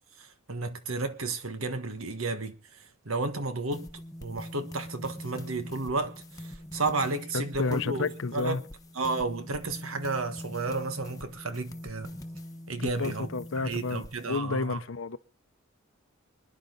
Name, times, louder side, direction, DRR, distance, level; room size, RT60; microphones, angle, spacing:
voice 1, 0.2-2.5 3.0-3.9 4.2-8.6 8.9-12.1 12.7-13.3 13.6-14.8, right 3 dB, 85° right, 1.4 m, -32 dB
sound 1, 3.7-14.4, left 1 dB, 15° left, 1.0 m, -43 dB
voice 2, 7.3-8.6 12.8-15.2, left 4 dB, 65° left, 0.7 m, -31 dB
25.5 x 10.5 x 3.9 m
head